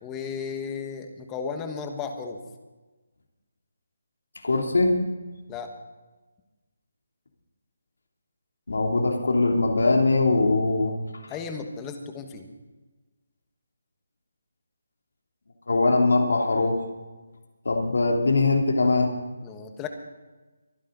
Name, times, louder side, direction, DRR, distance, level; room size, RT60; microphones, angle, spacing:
voice 1, 0.0-2.4 5.5-5.7 11.3-12.5 19.4-19.9, left 6 dB, 10° left, 5 dB, 1.2 m, -34 dB
voice 2, 4.4-5.0 8.7-11.0 11.2-11.3 15.7-16.8 17.6-19.1, left 3 dB, 75° left, 1 dB, 2.8 m, -21 dB
24.0 x 10.0 x 4.0 m, 1.2 s
hypercardioid pair, 170°, 0 cm